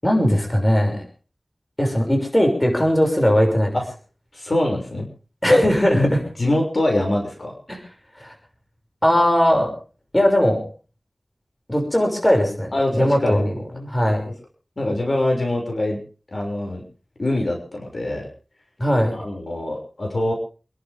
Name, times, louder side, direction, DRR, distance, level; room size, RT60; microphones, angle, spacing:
voice 1, 0.0-1.0 1.8-3.8 5.4-6.2 7.7-7.8 8.2-8.3 9.0-9.7 10.1-10.6 11.7-13.5 13.9-14.2 18.8-19.2, equal, 20° left, 2 dB, 6.3 m, -19 dB
voice 2, 4.3-5.1 5.5-5.6 5.9-6.1 6.4-7.5 12.7-13.4 13.7-14.0 14.8-16.0 16.3-16.8 17.2-18.3 19.1-20.3, left 1 dB, 60° left, 2 dB, 6.0 m, -24 dB
28.5 x 12.0 x 3.6 m, 0.37 s
wide cardioid pair, 60°, 0 cm